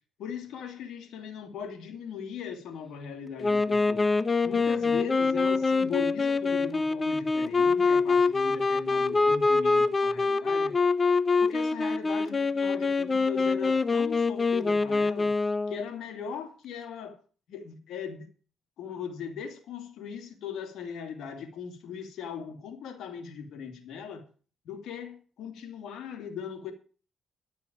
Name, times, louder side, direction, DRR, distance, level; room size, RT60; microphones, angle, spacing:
voice 1, 0.2-4.1 4.4-10.8 11.4-15.3 15.7-17.2 17.5-18.3 18.8-24.2 24.6-26.7, left 7 dB, 75° left, 2.7 m, -39 dB
Wind instrument woodwind instrument, 3.4-15.9, left 4 dB, 30° left, 0.6 m, -25 dB
11.5 x 6.3 x 8.8 m
cardioid pair, 90°, 0 cm